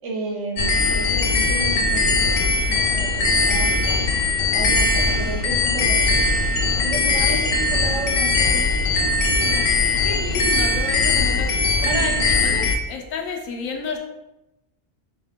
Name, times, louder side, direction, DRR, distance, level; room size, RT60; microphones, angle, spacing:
voice 1, 0.0-2.4 2.7-4.2 4.5-6.2 6.8-8.6 9.4-9.6 11.8-12.1 12.4-12.6, right 1 dB, 70° right, 0 dB, 1.1 m, -32 dB
sound 1, 0.6-12.8, left 3 dB, 65° left, 0.6 m, -20 dB
voice 2, 10.0-11.5 11.9-14.0, left 5 dB, 80° left, 3 dB, 1.0 m, -30 dB
3.6 x 2.8 x 3.5 m, 0.96 s
omnidirectional pair, 1.4 m